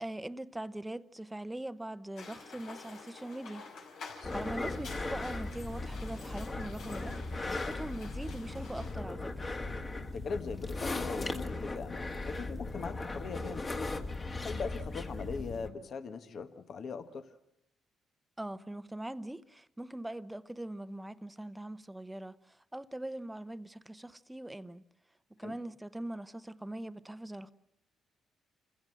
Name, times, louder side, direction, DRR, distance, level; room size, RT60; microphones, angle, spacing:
voice 1, 0.0-3.7 4.3-9.5 18.4-24.8 25.3-27.5, right 1 dB, 10° right, 0.8 m, -42 dB
sound 1, 2.2-8.9, left 4 dB, 80° left, 4.8 m, -49 dB
sound 2, 4.2-15.7, left 2 dB, 30° left, 1.8 m, -38 dB
voice 2, 10.0-14.0 14.4-17.3 25.4-25.6, left 5 dB, 55° left, 1.3 m, -40 dB
28.0 x 16.0 x 7.7 m
cardioid pair, 90°, 0 cm